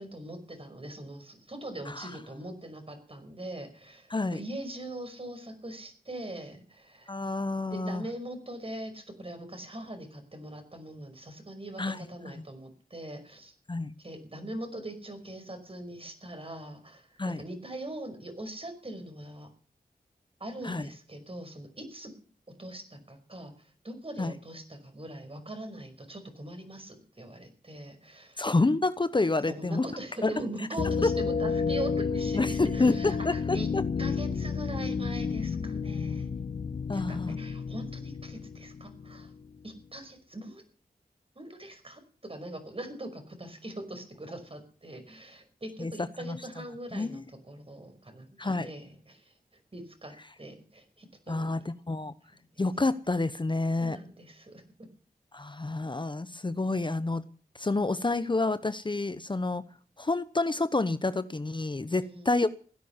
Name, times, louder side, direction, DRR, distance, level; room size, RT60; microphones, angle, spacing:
voice 1, 0.0-7.1 7.7-13.5 14.0-19.5 20.4-22.1 22.6-23.5 23.8-28.4 29.5-33.7 34.0-36.3 36.9-39.3 39.6-40.6 41.4-49.3 49.7-51.7 53.8-54.6 62.0-62.4, right 1 dB, 40° right, 7 dB, 5.4 m, -42 dB
voice 2, 7.1-8.0 11.8-12.0 13.7-13.9 17.2-17.4 20.6-20.8 24.2-24.3 28.4-29.9 30.2-30.3 32.3-33.8 36.9-37.4 45.8-45.9 46.2-46.4 46.9-47.2 48.4-48.7 51.3-52.1 52.6-54.0 55.3-57.2 57.6-59.6 60.0-62.5, left 3 dB, 30° left, 13 dB, 0.9 m, -28 dB
sound 1, 30.8-39.5, left 5 dB, 65° left, 0.9 m, -31 dB
16.5 x 10.5 x 7.2 m, 0.42 s
cardioid pair, 45°, 15 cm